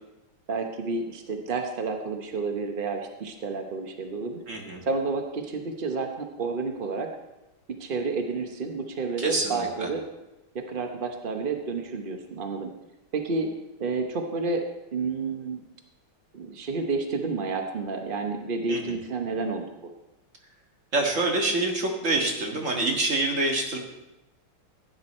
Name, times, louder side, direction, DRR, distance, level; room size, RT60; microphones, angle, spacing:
voice 1, 0.5-4.4 4.9-7.1 7.8-10.0 10.5-12.7 13.1-13.5 13.8-14.6 14.9-15.6 16.3-19.6, right 4 dB, 65° right, 4 dB, 0.5 m, -30 dB
voice 2, 4.5-4.8 9.2-9.9 18.7-19.0 20.9-23.8, right 2 dB, 35° right, 1 dB, 1.9 m, -26 dB
15.0 x 9.5 x 4.3 m, 0.97 s
omnidirectional pair, 2.4 m